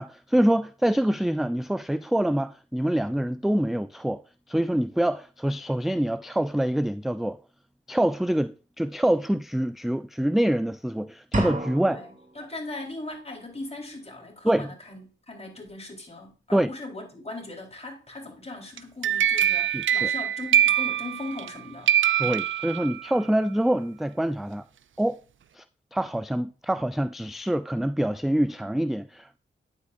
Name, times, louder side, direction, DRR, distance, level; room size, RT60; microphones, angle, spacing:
voice 1, 0.0-4.2 4.5-7.4 7.9-12.0 14.4-14.7 16.5-16.7 19.7-20.1 22.2-24.6 25.0-25.2 25.5-25.6 25.9-29.4, right 1 dB, ahead, 0.4 m, -25 dB
sound 1, 11.3-12.3, right 1 dB, 40° right, 2.4 m, -29 dB
voice 2, 11.7-22.4, left 2 dB, 30° left, 4.0 m, -39 dB
sound 2, 18.8-21.6 21.9-23.2, right 10 dB, 70° right, 0.5 m, -23 dB
9.4 x 8.3 x 2.6 m
cardioid pair, 50°, 21 cm